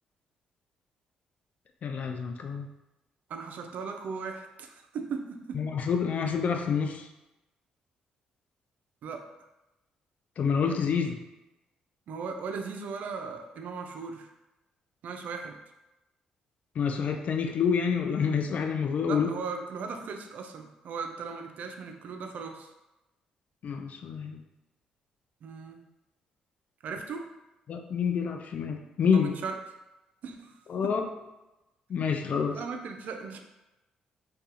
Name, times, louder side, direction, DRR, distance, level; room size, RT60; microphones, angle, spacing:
voice 1, 1.8-2.7 5.5-7.1 10.4-11.2 16.8-19.3 23.6-24.4 27.7-29.3 30.7-31.0 31.9-32.6, left 6 dB, 55° left, 5 dB, 0.3 m, -28 dB
voice 2, 3.3-5.7 9.0-9.3 12.1-14.3 15.0-15.6 19.1-22.7 25.4-25.9 26.8-27.4 29.1-29.6 30.2-31.0 32.5-33.4, right 5 dB, 65° right, 5 dB, 0.3 m, -38 dB
2.3 x 2.2 x 2.7 m, 0.99 s
supercardioid pair, 55°, 3 cm